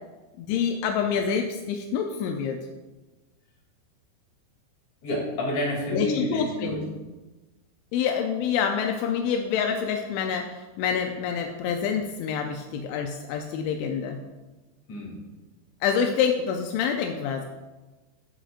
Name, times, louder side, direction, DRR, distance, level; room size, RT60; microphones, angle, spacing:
voice 1, 0.4-2.6 5.9-6.9 7.9-14.2 15.8-17.5, left 7 dB, 85° left, 3 dB, 2.9 m, -27 dB
voice 2, 5.0-6.8 14.9-15.2, left 1 dB, 45° left, -4 dB, 3.5 m, -29 dB
15.0 x 6.2 x 2.5 m, 1.2 s
omnidirectional pair, 5.3 m